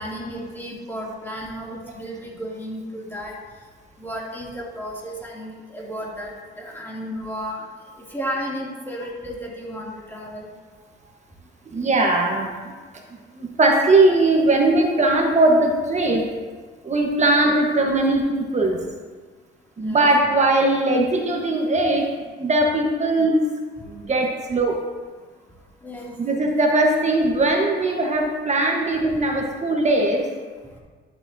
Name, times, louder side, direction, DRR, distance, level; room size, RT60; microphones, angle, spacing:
voice 1, 0.0-3.3 4.0-7.6 8.1-10.5 19.8-20.1 25.8-26.2, equal, 10° left, -5 dB, 2.7 m, -33 dB
voice 2, 11.7-12.7 13.3-16.2 16.8-18.8 19.8-22.1 22.4-23.4 23.9-24.8 26.2-30.3, right 2 dB, 35° right, 1 dB, 1.3 m, -20 dB
11.5 x 7.0 x 2.8 m, 1.5 s
cardioid pair, 90°, 20 cm